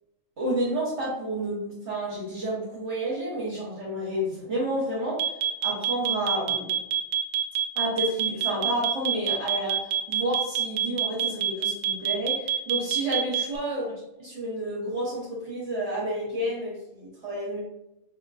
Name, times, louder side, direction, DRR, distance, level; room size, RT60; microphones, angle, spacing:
voice 1, 0.4-5.2 5.6-6.8 7.7-13.9 14.2-17.6, right 1 dB, 55° right, -7 dB, 1.5 m, -30 dB
sound 1, 5.2-13.6, right 10 dB, 85° right, 1.0 m, -25 dB
5.1 x 3.0 x 2.5 m, 0.87 s
omnidirectional pair, 1.4 m